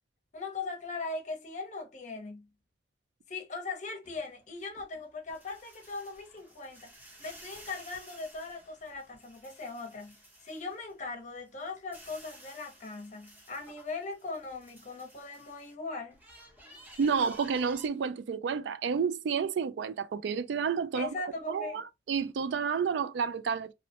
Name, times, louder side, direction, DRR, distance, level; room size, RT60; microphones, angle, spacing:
voice 1, 0.3-2.5 3.3-16.2 20.9-21.8, left 3 dB, 45° left, 0.7 m, -40 dB
sound 1, 4.0-11.0 11.4-15.7 16.1-17.9, right 1 dB, 10° right, 0.7 m, -54 dB
voice 2, 17.0-21.2 21.5-23.7, right 6 dB, 75° right, 0.3 m, -30 dB
2.6 x 2.0 x 2.8 m
head